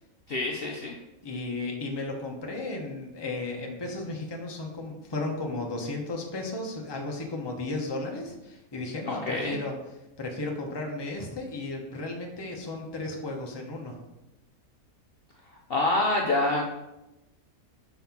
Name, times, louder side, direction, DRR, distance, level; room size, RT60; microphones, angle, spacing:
voice 1, 0.3-0.9 9.1-9.6 15.7-16.6, left 2 dB, 50° left, -1 dB, 0.8 m, -26 dB
voice 2, 1.2-9.7 10.2-13.9, left 2 dB, 20° left, 1 dB, 0.8 m, -34 dB
5.6 x 3.5 x 5.8 m, 0.96 s
omnidirectional pair, 1.5 m